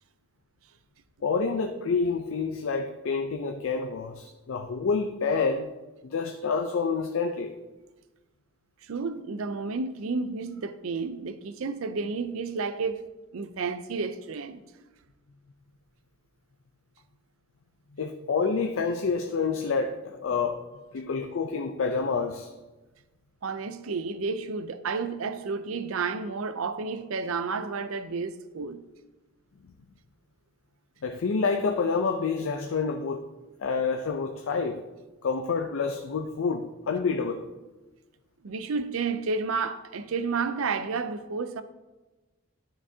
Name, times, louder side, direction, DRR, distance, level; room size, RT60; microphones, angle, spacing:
voice 1, 1.2-5.7 6.0-7.6 18.0-20.6 20.9-22.5 31.0-33.2 33.6-34.8 35.2-37.5, left 5 dB, 80° left, 0.5 m, -28 dB
voice 2, 8.8-13.0 13.3-14.6 23.4-28.8 38.4-41.6, right 4 dB, 85° right, 0.5 m, -31 dB
12.0 x 5.9 x 2.7 m
head